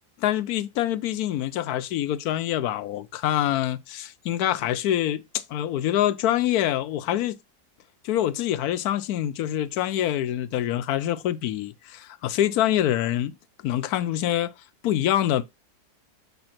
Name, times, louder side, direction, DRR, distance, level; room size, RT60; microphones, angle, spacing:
voice 1, 0.2-7.4 8.0-13.3 13.6-14.5 14.8-15.4, left 12 dB, 70° left, 1.1 m, -25 dB
6.9 x 3.5 x 4.3 m
omnidirectional pair, 1.8 m